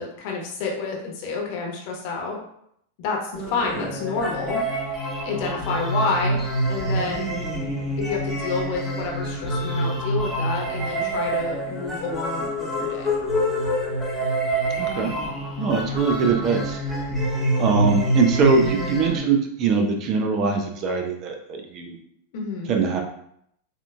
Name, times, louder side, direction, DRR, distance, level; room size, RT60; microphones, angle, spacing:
voice 1, 0.0-2.4 3.0-4.6 5.2-6.4 6.7-7.3 8.1-13.1 22.3-22.7, left 4 dB, 50° left, 0 dB, 1.1 m, -29 dB
sound 1, 3.3-19.2, right 1 dB, 5° right, 1.2 m, -26 dB
voice 2, 14.8-15.1 15.6-16.8 17.6-22.0 22.7-23.0, right 4 dB, 35° right, 3 dB, 0.6 m, -22 dB
7.1 x 2.6 x 2.3 m, 0.72 s
figure-of-eight pair, 90°, 0 cm